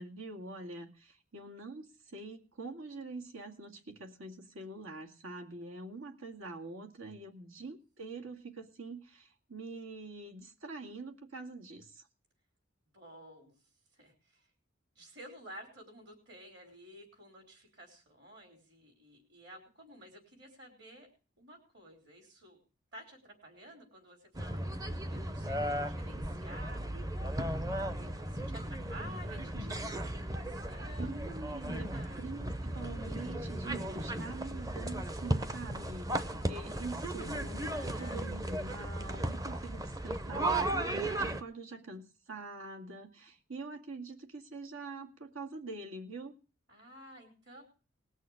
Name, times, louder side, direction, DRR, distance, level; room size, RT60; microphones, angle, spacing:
voice 1, 0.0-12.0 31.0-31.9 32.2-46.3, right 3 dB, 80° right, 3 dB, 2.1 m, -45 dB
voice 2, 7.3-7.6 12.9-13.5 14.0-14.5 15.0-21.1 21.4-22.6 22.9-24.6 25.1-26.8 27.5-31.2 31.7-32.2 37.5-38.3 46.7-47.6, equal, 55° right, 2 dB, 4.2 m, -52 dB
sound 1, 24.3-41.4, right 1 dB, 15° right, 0.7 m, -36 dB
19.5 x 6.4 x 6.5 m, 0.36 s
head